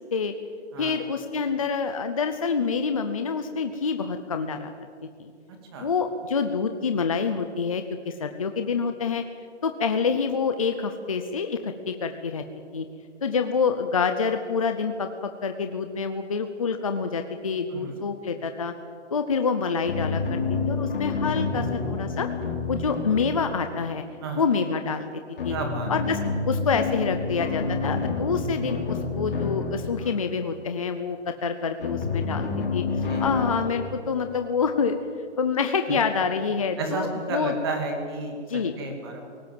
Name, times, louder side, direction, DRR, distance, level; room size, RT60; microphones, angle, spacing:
voice 1, 0.8-4.7 5.2-5.3 5.8-9.2 9.6-12.4 12.7-12.9 13.2-18.7 19.1-20.4 20.7-22.3 22.7-24.0 24.4-25.1 25.4-25.6 25.9-35.0 35.4-37.5 38.5-38.7, left 5 dB, 30° left, 7 dB, 0.7 m, -27 dB
sound 1, 19.9-24.3 25.4-30.3 31.8-33.5, left 4 dB, 50° left, 4.1 m, -29 dB
voice 2, 25.5-25.9 30.0-30.2 33.0-33.3 36.8-38.4 38.7-39.3, right 3 dB, 20° right, 3 dB, 2.4 m, -32 dB
22.5 x 18.5 x 7.7 m, 2.2 s
hypercardioid pair, 180°, 35 cm